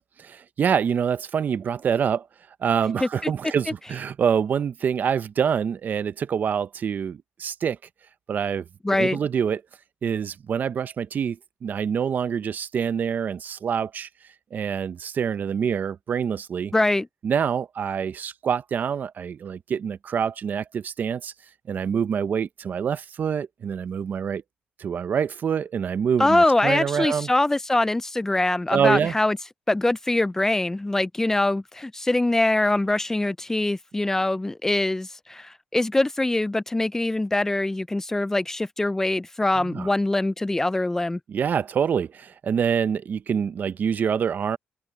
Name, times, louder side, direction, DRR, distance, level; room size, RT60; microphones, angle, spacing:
voice 1, 0.3-2.3 2.6-7.8 8.3-8.6 8.9-9.6 10.0-14.1 14.5-16.7 17.2-21.3 21.7-24.4 24.8-27.3 28.7-29.2 39.6-39.9 41.3-44.6, right 7 dB, 55° right, 0.7 m, -26 dB
voice 2, 8.8-9.2 16.7-17.1 26.2-29.4 29.7-41.2, left 2 dB, 10° left, 0.4 m, -23 dB
cardioid pair, 95°, 4 cm